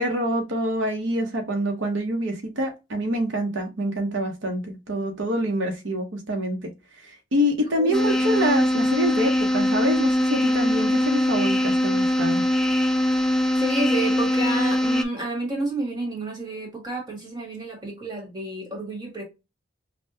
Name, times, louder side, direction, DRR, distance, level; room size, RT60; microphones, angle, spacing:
voice 1, 0.0-6.7 7.0-12.4, equal, 75° right, 0.8 m, -26 dB
voice 2, 7.8-8.2 13.2-19.2, right 2 dB, 20° right, 1.6 m, -30 dB
sound 1, 7.9-15.0, left 1 dB, 5° left, 0.3 m, -22 dB
5.5 x 2.2 x 2.7 m
head